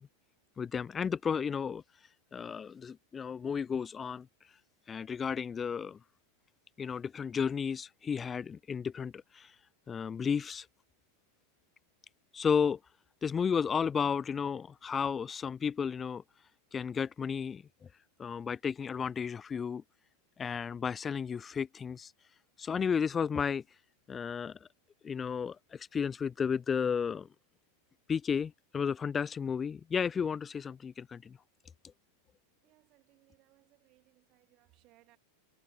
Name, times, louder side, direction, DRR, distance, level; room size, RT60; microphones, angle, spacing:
voice 1, 0.6-4.6 4.9-6.0 6.8-9.6 9.9-10.7 12.3-12.8 13.2-16.2 16.7-17.9 18.2-19.8 20.4-22.1 22.6-23.6 24.1-24.7 25.0-27.3 28.1-31.4, left 6 dB, 20° left, 0.4 m, -33 dB
voice 2, 32.6-35.2, right 19 dB, 40° right, 5.5 m, -67 dB
figure-of-eight pair, 90°, 0 cm